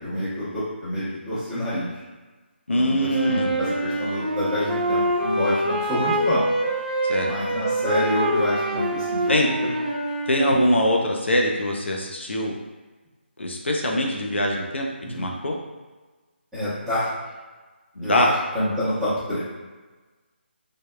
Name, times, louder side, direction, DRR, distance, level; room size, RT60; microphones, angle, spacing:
voice 1, 0.0-2.0 2.7-6.4 7.2-9.2 9.6-9.7 10.4-10.6 15.1-15.3 16.5-17.1 18.0-19.4, equal, 5° right, -14 dB, 0.9 m, -27 dB
voice 2, 2.7-3.6 7.0-7.3 9.3-9.5 10.3-12.5 13.4-15.6 18.0-18.3, left 1 dB, 80° left, 0 dB, 0.5 m, -23 dB
Wind instrument woodwind instrument, 3.1-11.1, right 1 dB, 45° right, 0.6 m, -25 dB
3.4 x 2.1 x 2.2 m, 1.3 s
figure-of-eight pair, 155°, 6 cm